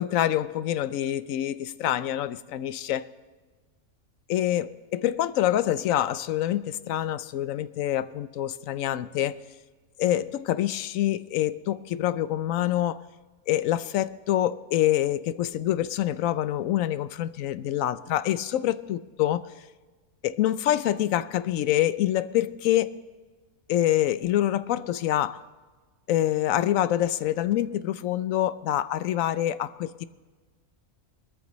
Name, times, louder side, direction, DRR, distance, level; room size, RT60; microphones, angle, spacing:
voice 1, 0.0-3.0 4.3-9.4 10.0-13.0 13.5-19.4 20.2-22.9 23.7-25.4 26.1-30.0, left 12 dB, 70° left, 15 dB, 0.9 m, -26 dB
21.5 x 13.5 x 3.1 m, 1.3 s
omnidirectional pair, 1.5 m